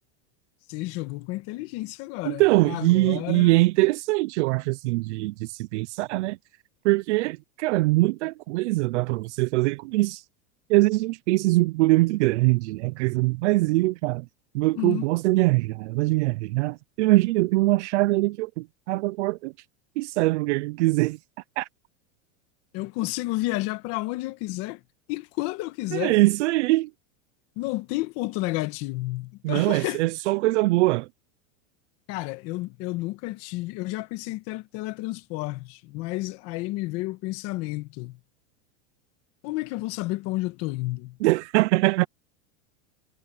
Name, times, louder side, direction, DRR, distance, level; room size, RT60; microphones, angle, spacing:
voice 1, 0.7-3.6 14.7-15.0 22.7-24.8 25.1-26.2 27.6-30.0 32.1-38.2 39.4-41.2, left 20 dB, 40° left, 1.4 m, -31 dB
voice 2, 2.2-6.4 6.8-10.2 10.7-14.3 14.5-19.5 20.0-21.2 21.6-21.7 25.9-26.9 29.4-31.1 41.2-42.1, right 20 dB, 65° right, 0.6 m, -22 dB
supercardioid pair, 170°, 38 cm